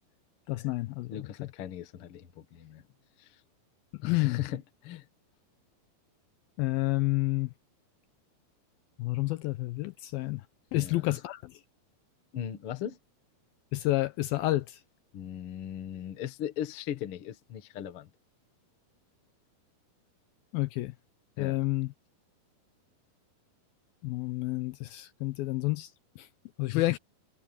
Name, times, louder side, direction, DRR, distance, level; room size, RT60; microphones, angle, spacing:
voice 1, 0.5-1.5 4.0-4.4 6.6-7.5 9.0-10.4 10.7-11.5 13.7-14.8 20.5-20.9 21.4-21.9 24.0-25.9 26.2-26.3 26.6-27.0, left 19 dB, 80° left, 2.3 m, -29 dB
voice 2, 1.1-2.8 3.2-3.4 4.0-5.1 10.7-11.2 12.3-13.0 15.1-18.1 21.4-21.6 26.7-27.0, left 10 dB, 55° left, 1.6 m, -38 dB
omnidirectional pair, 4.6 m